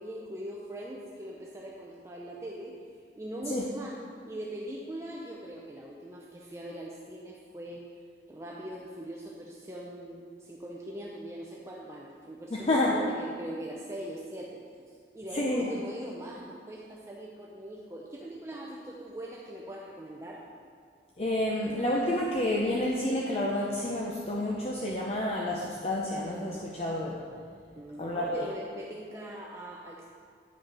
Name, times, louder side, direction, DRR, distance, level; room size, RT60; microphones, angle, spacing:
voice 1, 0.0-2.7 3.2-4.0 4.2-7.9 8.3-20.4 27.8-30.0, right 1 dB, 15° right, -3 dB, 0.6 m, -41 dB
voice 2, 12.5-12.9 15.3-15.7 21.2-27.2 28.0-28.5, left 1 dB, 35° left, -3 dB, 0.7 m, -29 dB
9.9 x 6.2 x 4.8 m, 2.1 s
head